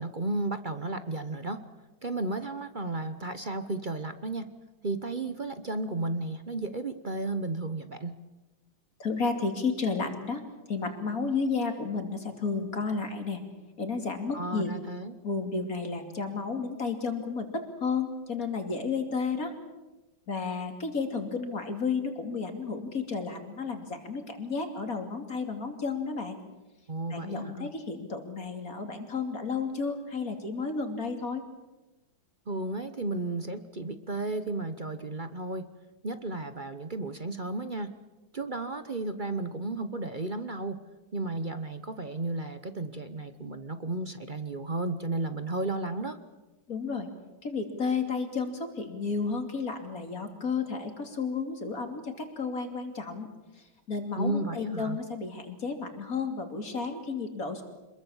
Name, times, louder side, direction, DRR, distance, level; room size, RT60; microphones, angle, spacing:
voice 1, 0.0-1.6 2.0-4.5 4.8-8.1 14.3-15.1 26.9-27.7 32.5-35.7 36.0-37.9 38.3-40.8 41.1-46.2 54.2-55.0, right 2 dB, 35° right, 10 dB, 0.8 m, -33 dB
voice 2, 9.0-13.4 13.8-14.7 15.2-19.5 20.3-26.4 27.1-31.4 46.7-47.1 47.4-53.3 53.9-57.6, left 4 dB, 45° left, 5 dB, 3.1 m, -32 dB
26.5 x 21.5 x 7.2 m, 1.1 s
omnidirectional pair, 2.2 m